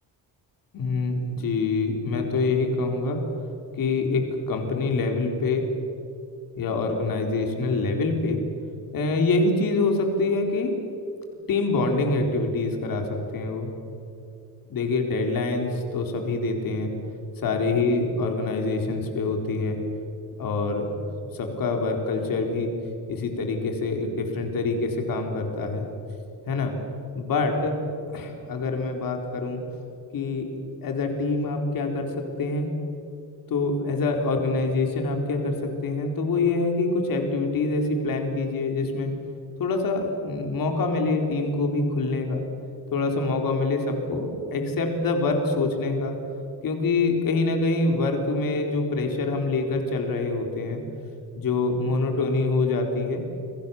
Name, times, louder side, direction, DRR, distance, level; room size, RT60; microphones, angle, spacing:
voice 1, 0.7-3.2 3.7-5.6 6.6-8.4 8.9-10.7 11.5-13.7 14.7-16.9 17.4-19.8 20.4-21.0 21.3-22.7 23.1-25.9 26.5-26.7 27.1-27.7 28.1-29.6 30.1-30.5 30.8-32.7 33.5-39.1 39.6-42.5 42.9-46.1 46.6-50.8 51.4-53.2, left 3 dB, 55° left, 3 dB, 4.2 m, -25 dB
29.0 x 23.0 x 7.1 m, 2.6 s
cardioid pair, 165°, 40 cm